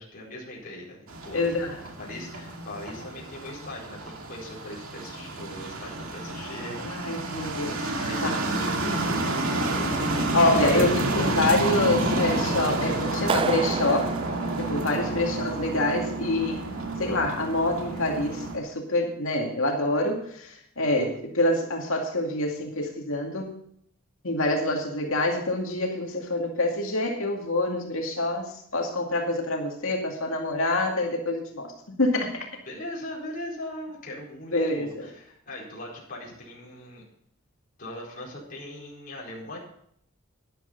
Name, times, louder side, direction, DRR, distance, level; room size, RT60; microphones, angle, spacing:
voice 1, 0.0-1.4 2.0-6.8 8.0-10.3 14.9-15.2 21.0-21.2 32.6-37.0 37.8-39.6, left 1 dB, 45° left, -4 dB, 4.5 m, -40 dB
sound 1, 1.1-18.6, right 2 dB, 75° right, 2.2 m, -29 dB
voice 2, 1.3-1.8 6.8-7.9 8.2-8.4 10.3-14.1 14.6-16.6 17.0-23.6 24.2-32.5 34.5-35.1, left 2 dB, 70° left, 1 dB, 2.2 m, -26 dB
Clapping, 13.3-15.3, right 5 dB, 25° right, 0.3 m, -31 dB
13.0 x 11.0 x 3.9 m, 0.69 s
head